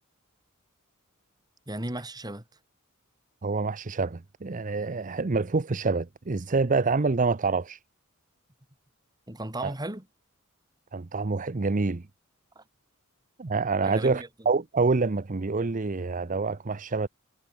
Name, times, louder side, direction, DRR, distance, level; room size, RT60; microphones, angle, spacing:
voice 1, 1.7-2.4 9.3-10.1 12.5-12.6 13.8-14.3, right 1 dB, 20° right, 2.9 m, -35 dB
voice 2, 3.4-7.8 9.6-9.7 10.9-12.1 13.4-17.1, right 4 dB, 35° right, 0.7 m, -27 dB
head